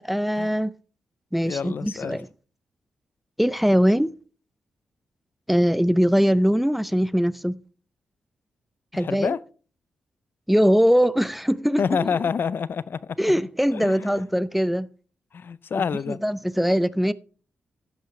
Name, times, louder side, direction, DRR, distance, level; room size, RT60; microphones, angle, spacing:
voice 1, 0.1-0.7 1.3-2.3 3.4-4.1 5.5-7.6 8.9-9.3 10.5-12.2 13.2-14.9 15.7-17.1, equal, 5° right, 0.5 m, -21 dB
voice 2, 1.4-2.2 8.9-9.4 11.8-13.4 13.7-14.2 15.3-16.2, left 6 dB, 60° left, 0.5 m, -28 dB
12.0 x 10.5 x 3.2 m
cardioid pair, 70°, 4 cm